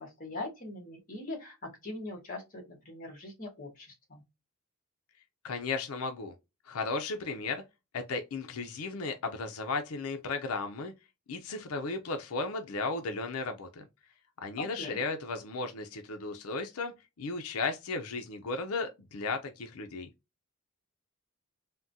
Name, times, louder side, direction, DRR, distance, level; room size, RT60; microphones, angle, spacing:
voice 1, 0.0-4.2 14.6-15.0, left 2 dB, 40° left, 1.5 m, -41 dB
voice 2, 5.4-6.3 6.7-7.6 7.9-10.9 11.3-13.8 14.4-20.1, left 3 dB, 90° left, 0.5 m, -35 dB
3.6 x 2.2 x 2.7 m
head